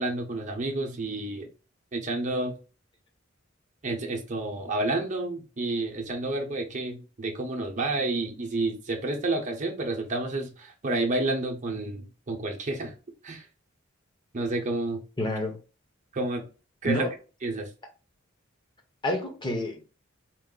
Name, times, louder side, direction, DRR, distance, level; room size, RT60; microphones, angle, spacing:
voice 1, 0.0-1.5 1.9-2.6 3.8-12.9 13.2-13.4 14.3-15.0 16.1-16.5 16.8-17.1 17.4-17.7, right 2 dB, 40° right, 0.8 m, -30 dB
voice 2, 15.2-15.6 16.8-17.1 19.0-19.9, left 1 dB, 25° left, 0.9 m, -28 dB
4.5 x 2.0 x 3.8 m
head